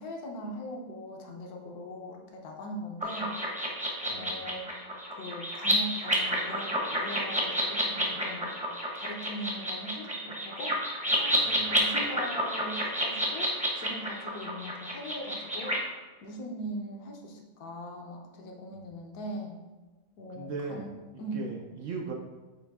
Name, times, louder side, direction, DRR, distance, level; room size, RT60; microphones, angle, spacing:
voice 1, 0.0-3.4 4.0-8.5 8.9-15.8 16.2-19.6 20.2-21.5, equal, 70° left, 2 dB, 1.3 m, -40 dB
sound 1, 3.0-15.8, equal, 5° right, 0.7 m, -30 dB
voice 2, 4.1-4.4 11.4-11.8 20.3-20.9 21.1-22.1, right 4 dB, 65° right, 1 dB, 0.8 m, -38 dB
9.0 x 3.1 x 3.5 m, 1.2 s
omnidirectional pair, 1.7 m